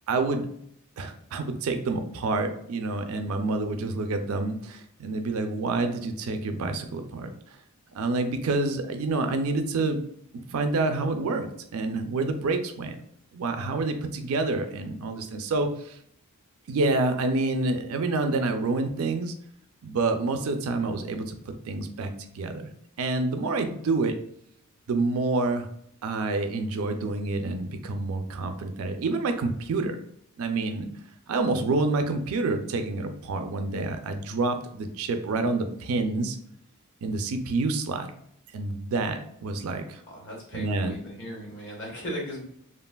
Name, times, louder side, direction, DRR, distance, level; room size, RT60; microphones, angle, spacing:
voice 1, 0.1-0.5 1.0-7.3 7.9-10.0 10.5-11.5 11.7-13.0 13.3-16.0 16.7-19.3 19.8-21.4 21.7-22.1 22.3-22.7 23.0-24.2 24.9-25.7 26.0-30.0 30.4-30.9 31.3-36.4 37.0-38.1 38.5-40.0 40.5-41.0, right 3 dB, 70° right, 6 dB, 0.4 m, -28 dB
voice 2, 40.1-42.4, equal, 55° left, -2 dB, 1.0 m, -37 dB
3.2 x 2.4 x 2.2 m, 0.69 s
head